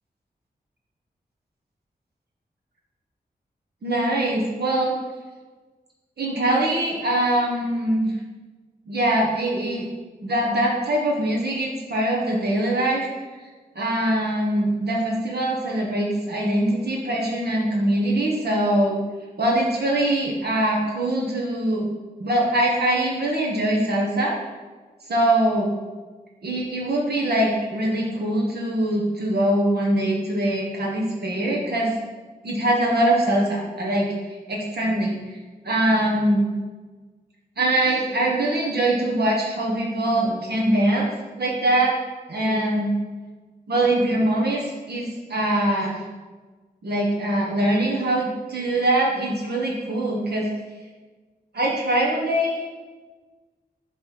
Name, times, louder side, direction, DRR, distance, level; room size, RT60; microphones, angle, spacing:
voice 1, 3.8-5.0 6.2-8.1 8.9-9.9 10.2-13.1 13.7-19.0 19.4-21.9 22.2-24.4 25.1-25.7 26.4-31.9 32.4-35.4 35.6-36.5 37.6-41.1 41.3-42.0 42.3-42.9 43.7-46.0 46.8-50.5 51.5-52.6, right 1 dB, 75° right, -3 dB, 1.3 m, -22 dB
7.4 x 3.4 x 5.8 m, 1.3 s
wide cardioid pair, 75°, 17 cm